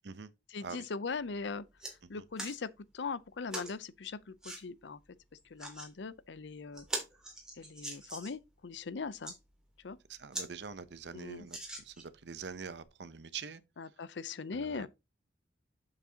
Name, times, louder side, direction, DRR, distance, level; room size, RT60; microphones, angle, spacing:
voice 1, 0.5-1.6 2.1-5.0 5.5-6.9 7.6-9.3 9.8-10.0 11.1-11.5 13.8-14.9, left 4 dB, 80° left, 0.6 m, -40 dB
sound 1, 1.1-1.2 1.5-1.9 2.4-2.6 3.5-3.7 4.4-4.6 5.4-5.9 6.3-6.4 6.7-8.4 9.0-9.4 9.9-10.0 10.3-10.5 10.8-10.9 11.5-12.2 12.8-12.9, right 1 dB, 5° right, 2.3 m, -41 dB
voice 2, 10.1-13.6 14.5-14.9, right 5 dB, 70° right, 0.7 m, -45 dB
8.2 x 6.8 x 2.8 m
head